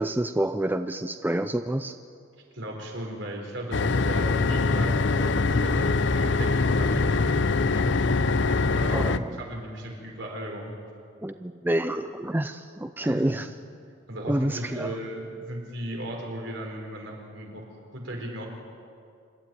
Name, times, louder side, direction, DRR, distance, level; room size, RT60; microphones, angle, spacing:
voice 1, 0.0-2.0 8.9-9.4 11.2-13.5 14.3-15.0, right 1 dB, 10° right, 9 dB, 0.4 m, -28 dB
voice 2, 2.5-10.7 13.0-13.2 14.1-17.7 17.9-18.5, right 1 dB, 65° right, 1 dB, 4.4 m, -36 dB
sound 1, 3.7-9.2, left 3 dB, 60° left, 0.6 m, -23 dB
26.5 x 12.5 x 9.2 m, 2.4 s
head